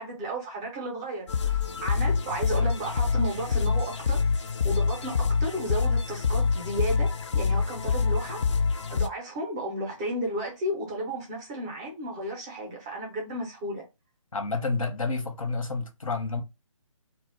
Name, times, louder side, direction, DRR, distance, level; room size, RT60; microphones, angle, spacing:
voice 1, 0.0-4.3 4.6-13.8, right 1 dB, 10° right, 0.4 m, -33 dB
sound 1, 1.3-9.1, left 5 dB, 60° left, 0.4 m, -26 dB
voice 2, 14.3-16.4, left 3 dB, 85° left, 0.8 m, -29 dB
2.2 x 2.0 x 3.5 m
figure-of-eight pair, 150°, 17 cm